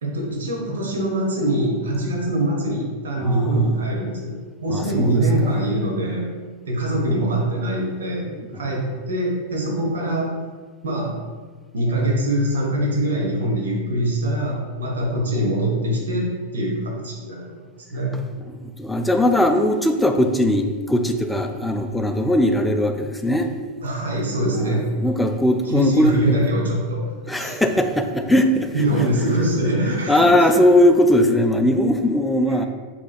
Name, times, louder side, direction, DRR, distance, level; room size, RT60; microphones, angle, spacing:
voice 1, 0.0-6.3 6.7-8.3 8.5-10.3 10.8-11.1 11.7-17.5 17.9-18.1 23.8-24.8 25.6-27.0 27.4-27.6 28.7-30.5, right 1 dB, 65° right, -1 dB, 1.0 m, -23 dB
voice 2, 3.2-3.8 4.7-5.6 18.6-23.5 24.6-26.4 27.3-28.7 30.1-32.7, left 1 dB, 5° left, 5 dB, 0.4 m, -19 dB
4.8 x 3.8 x 2.4 m, 1.4 s
figure-of-eight pair, 90°, 0 cm